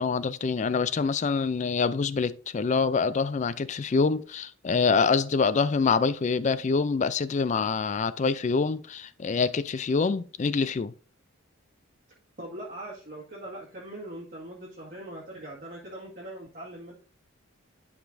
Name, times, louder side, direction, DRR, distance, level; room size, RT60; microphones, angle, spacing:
voice 1, 0.0-10.9, left 4 dB, 35° left, 0.3 m, -25 dB
voice 2, 12.4-16.9, right 1 dB, 40° right, 1.8 m, -41 dB
11.5 x 5.0 x 2.6 m
head